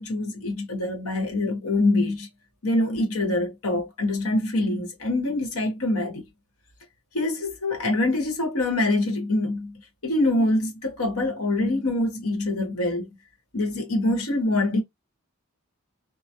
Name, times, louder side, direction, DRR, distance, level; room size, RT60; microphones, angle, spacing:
voice 1, 0.0-2.3 2.6-6.2 7.1-13.1 13.5-14.8, left 2 dB, 80° left, 1.0 m, -25 dB
2.2 x 2.0 x 2.7 m
head